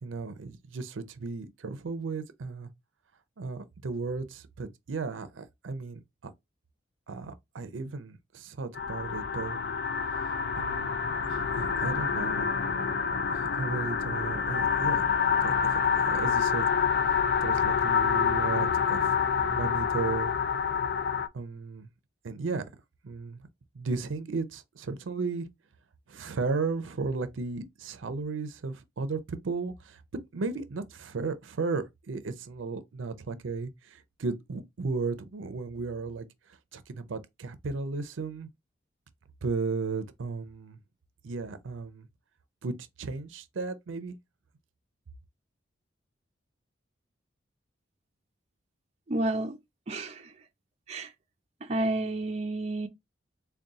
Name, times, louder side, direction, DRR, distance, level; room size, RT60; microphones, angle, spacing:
voice 1, 0.0-2.7 3.4-6.3 7.1-9.6 10.1-13.0 13.3-15.1 15.4-16.7 17.0-20.3 21.3-21.9 22.2-22.6 23.0-23.5 23.7-25.5 26.1-38.5 39.4-40.8 41.2-42.1 42.6-44.2, right 4 dB, 85° right, 0.5 m, -35 dB
sound 1, 8.7-21.3, left 6 dB, 55° left, 0.4 m, -27 dB
voice 2, 49.1-49.6 49.9-50.3 50.9-51.1 51.7-52.9, right 2 dB, 35° right, 0.5 m, -30 dB
4.0 x 2.2 x 3.5 m
head